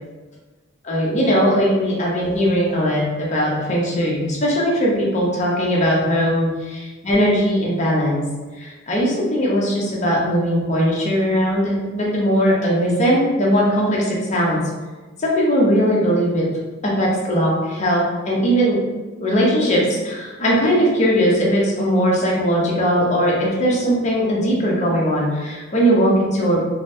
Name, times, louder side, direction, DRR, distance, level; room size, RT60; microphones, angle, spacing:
voice 1, 0.8-8.2 8.6-14.6 15.2-16.4 16.8-18.8 19.2-26.6, equal, 35° left, -4 dB, 0.7 m, -19 dB
3.8 x 2.0 x 2.6 m, 1.3 s
head